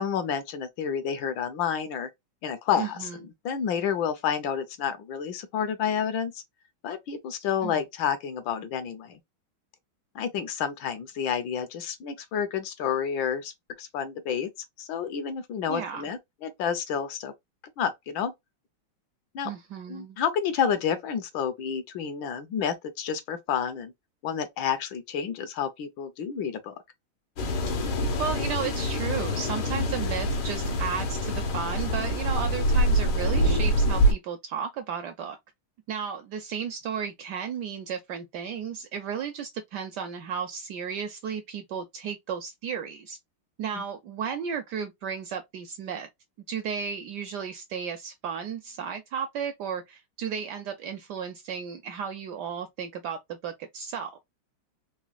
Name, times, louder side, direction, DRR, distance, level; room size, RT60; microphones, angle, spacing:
voice 1, 0.0-2.1 2.4-3.1 3.4-6.3 6.8-9.2 10.1-13.5 13.8-14.5 14.8-17.3 17.8-18.3 19.3-19.5 19.9-23.9 24.2-26.8 43.7-43.8, left 8 dB, 70° left, 1.4 m, -29 dB
voice 2, 2.8-3.2 7.6-7.8 15.7-16.1 19.4-20.2 28.2-35.4 35.9-43.2 43.6-46.1 46.5-54.2, right 7 dB, 75° right, 1.0 m, -34 dB
sound 1, 27.4-34.1, equal, 90° left, 1.8 m, -25 dB
4.0 x 3.0 x 2.3 m
omnidirectional pair, 2.2 m